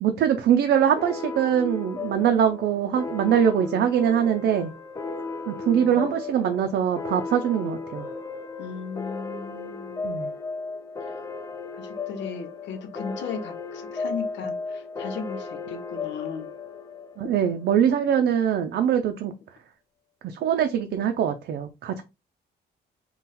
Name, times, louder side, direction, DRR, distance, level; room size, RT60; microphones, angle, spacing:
voice 1, 0.0-4.7 5.5-8.1 10.0-10.3 17.2-19.3 20.2-22.0, right 9 dB, 70° right, 5 dB, 0.6 m, -23 dB
sound 1, 1.0-18.1, left 4 dB, 20° left, 0.4 m, -35 dB
voice 2, 5.7-6.1 8.6-10.1 11.1-11.2 11.7-16.5, left 5 dB, 85° left, 6 dB, 1.0 m, -36 dB
3.9 x 2.3 x 4.1 m, 0.25 s
cardioid pair, 155°, 18 cm